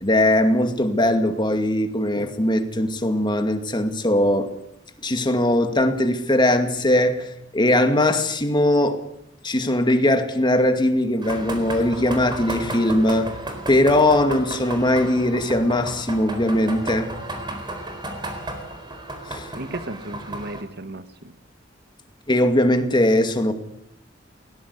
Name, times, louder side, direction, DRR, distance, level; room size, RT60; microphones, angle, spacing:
voice 1, 0.0-4.5 5.0-9.0 9.4-13.3 13.7-17.1 19.3-19.5 22.3-23.5, left 1 dB, 25° left, 7 dB, 2.3 m, -20 dB
sound 1, 11.2-20.6, right 1 dB, 25° right, 4.2 m, -33 dB
voice 2, 19.5-21.3, right 1 dB, 60° right, 11 dB, 1.6 m, -34 dB
21.0 x 18.0 x 8.4 m, 0.78 s
head